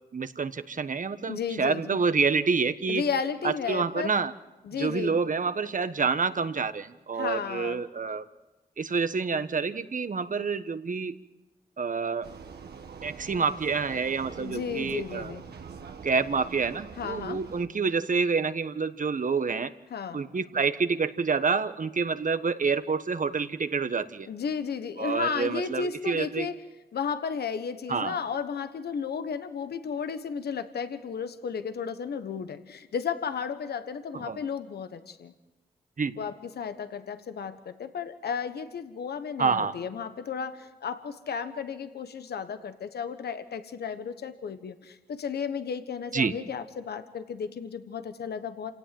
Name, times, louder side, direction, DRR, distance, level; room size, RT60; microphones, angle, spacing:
voice 1, 0.1-3.0 3.4-4.3 4.8-8.2 8.8-11.2 11.8-12.3 13.0-15.3 16.0-19.7 20.1-24.3 25.0-26.5 27.9-28.2 34.1-34.4 36.0-36.2 39.4-39.7 46.1-46.3, right 5 dB, 55° right, 12 dB, 1.3 m, -28 dB
voice 2, 1.3-2.0 2.9-4.1 4.6-5.2 7.1-7.8 14.4-15.4 17.0-17.4 19.9-20.2 24.3-26.5 26.9-35.3 36.2-48.7, left 6 dB, 80° left, 10 dB, 1.3 m, -33 dB
Vehicle, 12.2-17.7, right 6 dB, 80° right, 1.7 m, -44 dB
28.0 x 17.5 x 7.8 m, 1.1 s
cardioid pair, 45°, 16 cm